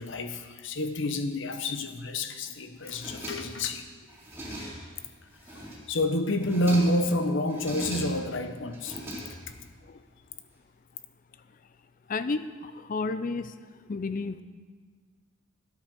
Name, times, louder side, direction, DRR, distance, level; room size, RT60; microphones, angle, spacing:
voice 1, 0.0-3.8 5.5-9.0, left 1 dB, 60° left, 8 dB, 0.9 m, -28 dB
sound 1, 2.8-3.7 4.1-5.0 5.3-6.0 6.3-7.1 7.5-8.4 8.7-9.7, right 1 dB, 10° right, 2.5 m, -40 dB
voice 2, 12.1-13.6 13.9-14.4, left 3 dB, 40° left, 12 dB, 0.4 m, -32 dB
12.5 x 8.3 x 6.1 m, 1.5 s
head